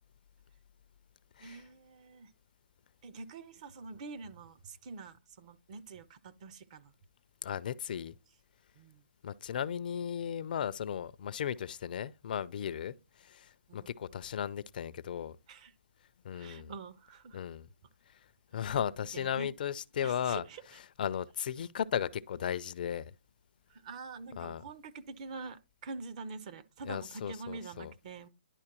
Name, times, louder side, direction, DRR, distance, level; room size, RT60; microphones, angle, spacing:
voice 1, 1.4-2.3 3.0-6.9 8.7-9.0 12.8-12.9 13.7-13.9 15.5-15.7 16.3-17.4 18.5-18.8 19.1-19.5 20.0-20.6 23.7-28.3, right 4 dB, 35° right, 0.6 m, -46 dB
voice 2, 7.4-8.1 9.2-15.4 16.2-16.7 17.3-17.7 18.1-18.2 18.5-20.4 21.0-23.1 24.4-24.6 26.9-27.9, left 9 dB, 45° left, 0.4 m, -36 dB
11.0 x 4.4 x 2.9 m
hypercardioid pair, 155°, 6 cm